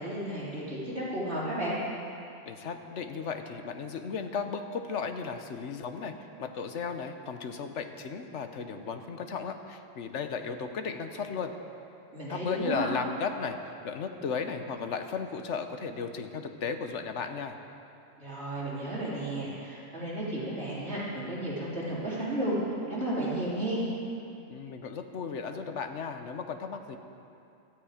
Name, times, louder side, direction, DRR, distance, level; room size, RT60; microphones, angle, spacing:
voice 1, 0.0-1.8 12.1-12.9 18.2-22.6 22.9-23.9, right 1 dB, 60° right, -8 dB, 4.0 m, -33 dB
voice 2, 2.4-6.1 6.4-11.5 12.3-17.6 24.5-27.0, left 5 dB, 75° left, 7 dB, 1.2 m, -35 dB
16.5 x 13.0 x 5.0 m, 2.6 s
omnidirectional pair, 1.2 m